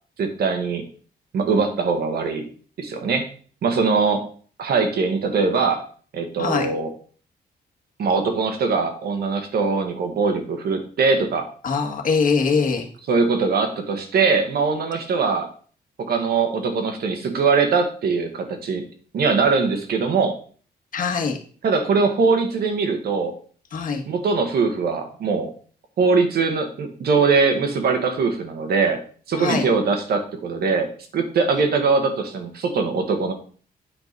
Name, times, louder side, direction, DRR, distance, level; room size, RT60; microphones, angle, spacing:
voice 1, 0.2-0.8 1.3-2.4 2.8-3.3 3.6-4.2 4.6-5.8 6.1-6.9 8.0-11.5 13.1-15.5 16.0-18.8 19.1-20.4 21.6-23.3 24.1-25.5 26.0-29.0 29.3-30.9 31.1-33.3, right 4 dB, 65° right, 5 dB, 1.7 m, -21 dB
voice 2, 11.6-12.8 20.9-21.4 23.7-24.0 29.4-29.6, left 5 dB, 50° left, 3 dB, 1.7 m, -22 dB
9.3 x 5.2 x 5.3 m, 0.43 s
wide cardioid pair, 170°, 17 cm